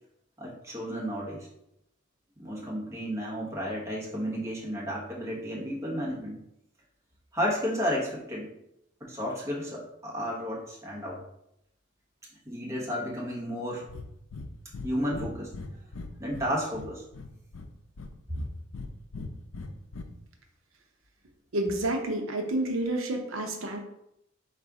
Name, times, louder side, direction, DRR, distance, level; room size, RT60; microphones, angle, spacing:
voice 1, 0.4-1.5 2.4-6.4 7.3-8.5 9.0-11.2 12.4-13.9 14.8-15.5 16.2-17.0 18.3-18.4, equal, 15° right, -5 dB, 1.1 m, -32 dB
Breathing, 13.9-14.1 14.3-14.5 14.7-14.9 15.1-16.5 16.7-17.7 18.0-18.9 19.1-20.0, left 3 dB, 70° left, 0.5 m, -39 dB
voice 2, 21.5-23.8, right 1 dB, 80° right, 3 dB, 0.7 m, -29 dB
4.1 x 2.5 x 4.8 m, 0.81 s
head